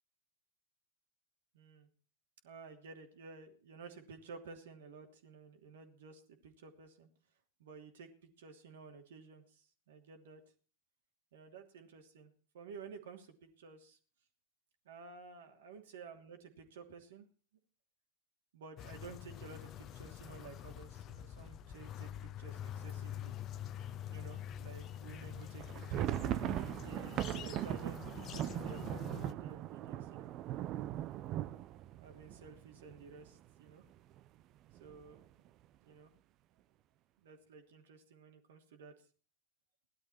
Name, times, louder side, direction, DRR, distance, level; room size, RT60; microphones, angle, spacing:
voice 1, 1.5-1.9 2.4-7.1 7.6-10.4 11.3-14.0 14.8-17.3 18.5-23.3 24.1-30.3 32.0-33.8 34.8-35.4 35.8-36.1 37.2-38.9, right 5 dB, 65° right, 5 dB, 2.9 m, -53 dB
sound 1, 18.8-29.3, left 10 dB, 35° left, 1.1 m, -46 dB
sound 2, 25.6-33.3 33.6-33.7 34.0-34.2 34.7-35.2, right 13 dB, 40° right, 0.8 m, -39 dB
18.0 x 12.0 x 4.5 m, 0.40 s
figure-of-eight pair, 90°, 0 cm